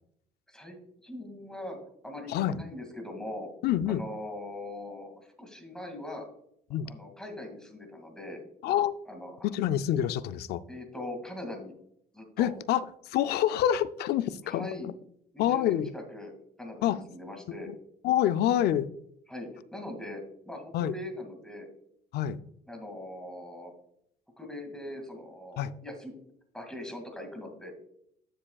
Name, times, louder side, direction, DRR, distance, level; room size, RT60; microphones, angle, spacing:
voice 1, 0.5-1.8 2.0-3.5 3.9-6.3 6.9-8.4 9.1-9.5 10.7-11.7 12.1-12.5 14.4-14.9 15.3-16.3 16.6-17.7 19.3-20.2 20.5-21.7 22.7-23.7 24.4-26.2 26.5-27.8, left 1 dB, 5° left, 3 dB, 2.1 m, -41 dB
voice 2, 2.3-2.6 3.6-4.0 6.7-6.9 8.6-8.9 9.4-10.6 12.4-14.7 15.4-15.9 16.8-17.0 17.7-17.8 18.0-18.9 20.7-20.9 22.1-22.4 25.6-25.7, left 11 dB, 75° left, 14 dB, 0.5 m, -27 dB
9.9 x 7.1 x 2.3 m, 0.72 s
cardioid pair, 110°, 17 cm